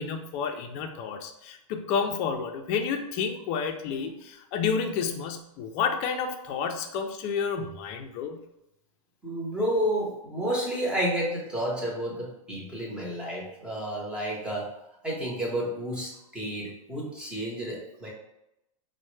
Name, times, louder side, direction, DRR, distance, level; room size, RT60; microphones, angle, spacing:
voice 1, 0.0-8.4, left 6 dB, 35° left, 5 dB, 0.4 m, -30 dB
voice 2, 9.2-14.7 15.0-18.1, equal, 5° right, -5 dB, 0.9 m, -30 dB
4.2 x 2.1 x 3.1 m, 0.88 s
supercardioid pair, 145°, 18 cm